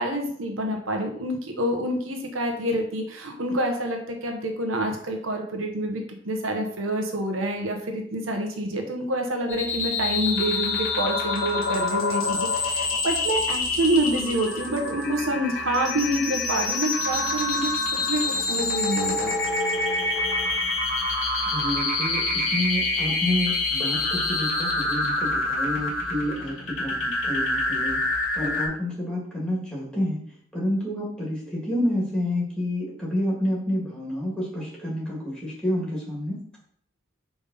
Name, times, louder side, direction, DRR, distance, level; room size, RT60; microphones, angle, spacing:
voice 1, 0.0-17.7 18.1-18.2 18.5-19.3, right 1 dB, 80° right, 3 dB, 1.1 m, -27 dB
sound 1, 9.5-28.7, left 3 dB, 85° left, 2.4 m, -26 dB
voice 2, 21.5-28.0 28.4-30.2 30.5-36.4, left 1 dB, 5° left, -5 dB, 1.8 m, -29 dB
5.0 x 3.5 x 5.4 m, 0.63 s
head